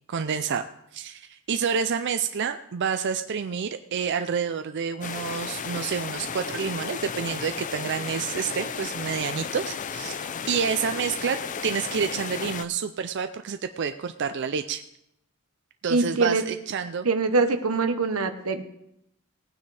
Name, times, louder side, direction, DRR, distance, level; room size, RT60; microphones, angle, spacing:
voice 1, 0.1-0.7 0.9-11.4 11.6-14.8 15.8-17.1, right 6 dB, 55° right, 9 dB, 0.4 m, -28 dB
sound 1, 5.0-12.6, left 6 dB, 35° left, 0.5 m, -34 dB
voice 2, 15.9-16.4 17.0-18.6, right 3 dB, 90° right, 9 dB, 1.0 m, -23 dB
19.0 x 9.4 x 3.3 m, 0.79 s
head